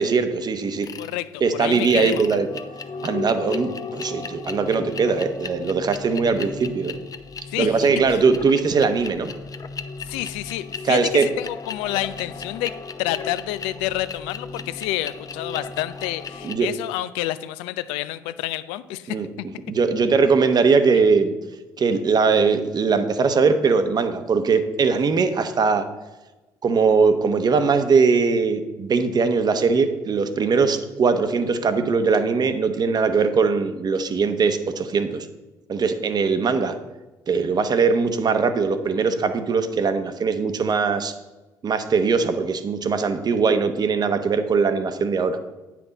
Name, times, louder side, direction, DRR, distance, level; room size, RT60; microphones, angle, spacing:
voice 1, 0.0-0.9 1.4-2.5 3.0-6.9 7.6-9.3 10.8-11.2 16.4-16.7 19.1-19.3 19.7-21.3 21.8-25.8 26.6-35.3 35.7-36.7 37.3-41.1 41.6-45.4, right 5 dB, 45° right, 9 dB, 0.9 m, -20 dB
sound 1, 0.8-1.1 1.7-16.6, left 4 dB, 40° left, 0.7 m, -35 dB
voice 2, 1.5-2.4 7.5-8.2 10.0-12.7 13.0-19.5, left 15 dB, 80° left, 14 dB, 0.4 m, -29 dB
9.6 x 6.0 x 4.0 m, 1.1 s
hypercardioid pair, 55°, 10 cm